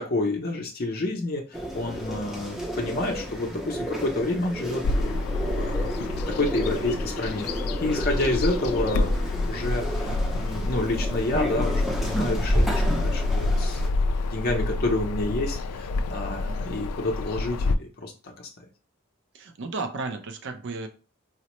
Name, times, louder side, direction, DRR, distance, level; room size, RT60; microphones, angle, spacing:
voice 1, 0.0-1.4 1.7-5.2 5.5-5.9 6.4-7.5 7.8-9.1 9.4-13.8 14.3-18.1, left 2 dB, 45° left, 0 dB, 0.6 m, -29 dB
sound 1, 1.5-13.9, equal, ahead, 0.5 m, -30 dB
Bird vocalization bird call bird song, 4.8-17.7, left 2 dB, 85° left, 0.3 m, -28 dB
voice 2, 19.3-20.9, right 3 dB, 55° right, 7 dB, 0.5 m, -34 dB
4.1 x 2.0 x 3.0 m, 0.33 s
head